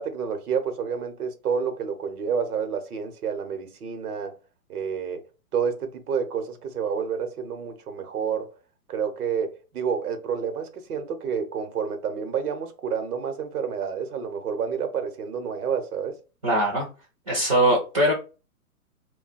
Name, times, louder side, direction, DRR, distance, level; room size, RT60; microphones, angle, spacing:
voice 1, 0.0-4.3 4.7-5.2 5.5-8.5 8.9-16.2, right 6 dB, 85° right, 0.9 m, -29 dB
voice 2, 16.4-16.9 17.3-18.1, right 1 dB, 25° right, 0.4 m, -21 dB
2.4 x 2.2 x 4.0 m
hypercardioid pair, 150°, 45 cm